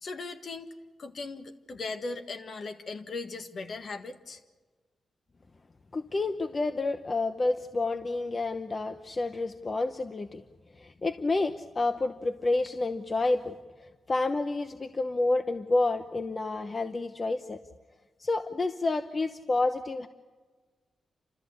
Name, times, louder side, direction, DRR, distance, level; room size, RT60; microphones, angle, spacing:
voice 1, 0.0-0.7 1.0-4.4, left 3 dB, 60° left, 8 dB, 1.6 m, -38 dB
voice 2, 5.9-10.4 10.8-13.5 14.1-17.6 18.2-20.1, left 2 dB, 35° left, 9 dB, 0.9 m, -29 dB
30.0 x 13.5 x 8.5 m, 1.4 s
cardioid pair, 80°, 0 cm